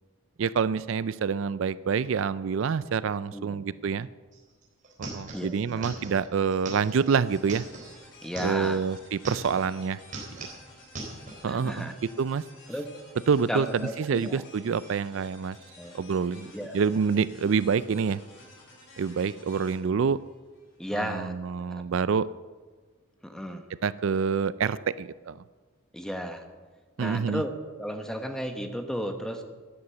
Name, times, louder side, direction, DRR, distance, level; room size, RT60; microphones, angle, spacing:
voice 1, 0.4-4.1 5.0-7.6 8.4-10.0 11.4-12.5 13.3-15.6 15.9-18.2 19.0-20.2 20.9-22.3 23.8-25.4 27.0-27.4, right 6 dB, 65° right, 17 dB, 0.4 m, -27 dB
voice 2, 3.3-3.7 5.3-5.8 8.2-8.8 11.4-11.9 12.7-12.9 13.5-14.4 15.8-15.9 16.5-16.7 20.8-21.8 23.2-23.7 25.9-26.5 27.0-27.5 27.8-29.4, equal, 5° left, 5 dB, 1.1 m, -34 dB
sound 1, 4.3-4.4 4.6-8.8 9.1-9.7 10.0-11.4, right 2 dB, 35° right, 4.1 m, -40 dB
sound 2, 7.1-20.8, left 2 dB, 55° left, 5.9 m, -53 dB
13.5 x 9.7 x 8.3 m, 1.4 s
head